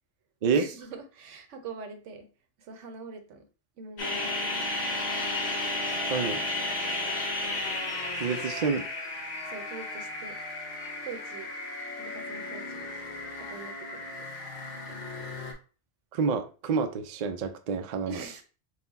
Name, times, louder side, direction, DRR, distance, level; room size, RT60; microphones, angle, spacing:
voice 1, 0.5-2.3 2.6-3.5 3.8-4.6 6.2-6.4 6.7-6.8 9.4-10.4 11.0-11.5 12.0-12.9 13.4-14.1 14.9-15.3 18.1-18.4, right 4 dB, 85° right, 7 dB, 1.1 m, -43 dB
sound 1, 4.0-15.5, left 2 dB, 65° left, 1.3 m, -33 dB
voice 2, 8.2-8.8 16.1-18.2, right 5 dB, 60° right, 7 dB, 0.4 m, -28 dB
4.1 x 2.2 x 4.0 m, 0.36 s
omnidirectional pair, 1.2 m